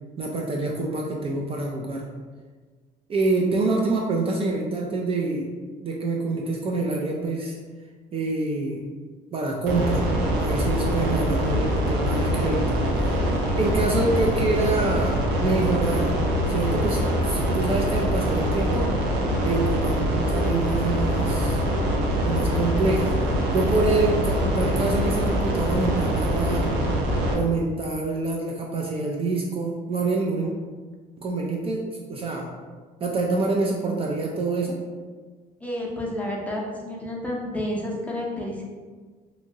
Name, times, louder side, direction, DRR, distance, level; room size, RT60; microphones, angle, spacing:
voice 1, 0.2-2.0 3.1-5.5 5.8-7.6 8.1-8.8 9.3-10.1 10.4-16.2 16.5-18.9 19.4-21.6 22.2-23.1 23.5-26.8 27.3-30.5 31.2-32.5 33.0-34.8, right 3 dB, 35° right, -1 dB, 0.4 m, -26 dB
voice 2, 3.3-4.5 35.6-38.7, left 1 dB, 10° left, -3 dB, 0.6 m, -32 dB
sound 1, 9.7-27.3, equal, 85° right, 0.6 m, -24 dB
2.9 x 2.5 x 2.7 m, 1.5 s
cardioid pair, 110°, 17 cm